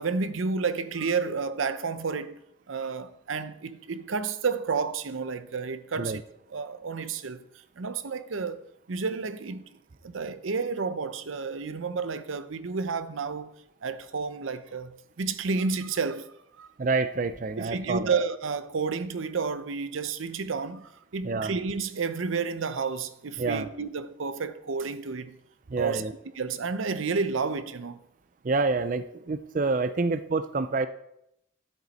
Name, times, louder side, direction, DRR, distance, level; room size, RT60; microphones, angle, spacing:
voice 1, 0.0-2.4 2.7-6.2 6.5-7.5 7.8-8.6 8.9-13.5 13.8-16.7 17.6-25.4 25.8-26.0 26.4-28.0, right 5 dB, 90° right, 0.7 m, -31 dB
voice 2, 16.8-18.1 21.2-21.5 23.4-23.7 25.7-26.1 28.4-30.9, right 3 dB, 40° right, 0.4 m, -27 dB
12.5 x 7.9 x 4.2 m
head